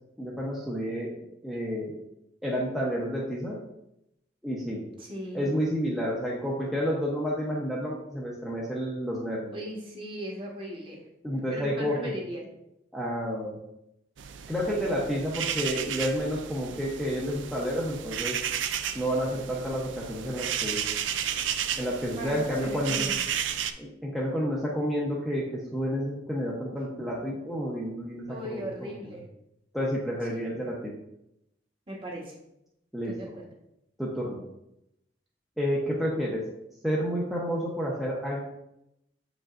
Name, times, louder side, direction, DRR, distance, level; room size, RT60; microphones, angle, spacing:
voice 1, 0.2-1.1 1.4-2.0 2.4-3.6 4.4-4.8 5.3-9.6 11.2-12.1 12.9-13.6 14.5-18.4 18.9-20.8 21.8-23.1 23.8-28.9 29.7-30.9 32.9-33.1 34.0-34.4 35.6-36.4 36.8-38.4, equal, ahead, -5 dB, 0.8 m, -30 dB
voice 2, 5.0-5.5 9.5-11.0 11.5-12.5 22.1-23.2 28.3-29.3 30.3-30.4 31.9-32.3 33.0-33.5, equal, 30° right, -2 dB, 1.3 m, -38 dB
sound 1, 14.2-23.7, right 9 dB, 90° right, 0.4 m, -33 dB
7.8 x 5.0 x 2.5 m, 0.84 s
head